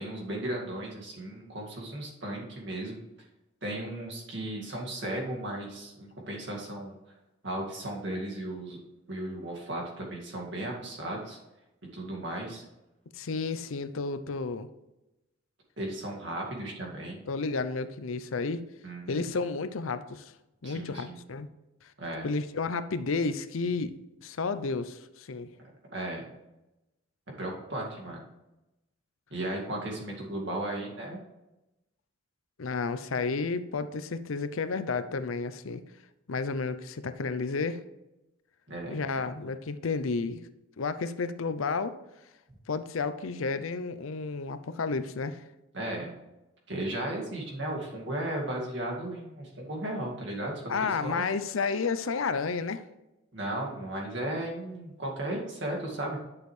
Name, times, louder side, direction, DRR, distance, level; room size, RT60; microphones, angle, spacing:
voice 1, 0.0-3.0 3.6-6.9 7.4-8.8 9.1-11.4 11.9-12.6 15.8-17.2 18.8-19.3 20.6-21.2 22.0-22.3 25.9-26.3 27.4-28.2 29.3-31.2 38.7-39.0 45.7-46.1 46.7-50.5 50.8-51.2 53.3-56.2, right 1 dB, 60° right, -1 dB, 2.1 m, -35 dB
voice 2, 13.1-14.7 17.3-18.6 19.1-20.3 20.6-21.5 22.2-23.9 24.2-25.5 32.6-35.8 36.3-37.8 38.9-40.4 40.8-42.0 42.7-45.4 50.7-52.8, left 4 dB, 80° left, 12 dB, 0.6 m, -31 dB
11.0 x 6.4 x 3.3 m, 0.96 s
head